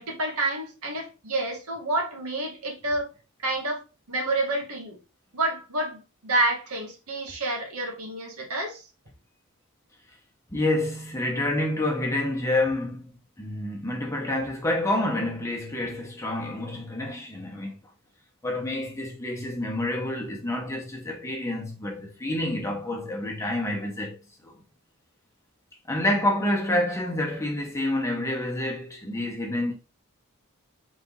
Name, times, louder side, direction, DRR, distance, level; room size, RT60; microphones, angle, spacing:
voice 1, 0.0-3.1 3.4-5.0 5.3-8.9, right 2 dB, 80° right, 1.7 m, -29 dB
voice 2, 10.5-13.0 13.4-17.7 18.4-24.5 25.9-29.7, left 1 dB, 15° left, 1.0 m, -28 dB
4.1 x 3.4 x 3.7 m
head